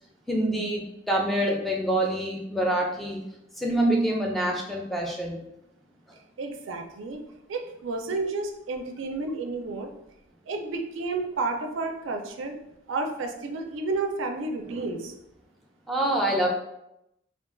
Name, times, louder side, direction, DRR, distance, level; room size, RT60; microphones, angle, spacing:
voice 1, 0.3-3.2 3.6-5.4 15.9-16.5, right 1 dB, ahead, -1 dB, 0.4 m, -26 dB
voice 2, 6.4-7.2 7.5-9.9 10.5-12.5 12.9-15.1, right 3 dB, 75° right, 4 dB, 0.4 m, -31 dB
2.4 x 2.3 x 3.6 m, 0.84 s
head